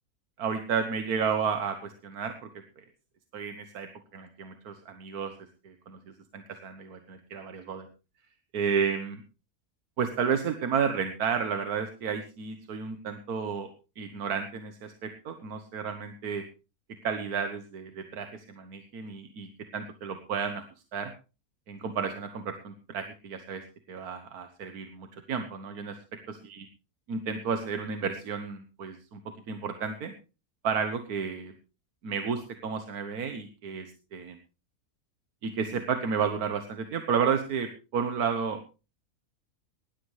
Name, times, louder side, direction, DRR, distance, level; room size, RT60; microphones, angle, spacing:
voice 1, 0.4-2.8 3.3-5.3 5.6-6.0 6.3-7.9 8.5-9.2 10.0-13.7 14.0-16.4 17.0-20.6 20.9-21.1 21.7-23.6 23.9-26.0 26.3-26.6 27.1-29.2 29.5-30.1 30.6-31.5 32.0-34.4 35.4-38.6, right 6 dB, 90° right, 8 dB, 1.7 m, -32 dB
19.5 x 13.0 x 3.2 m, 0.33 s
omnidirectional pair, 1.6 m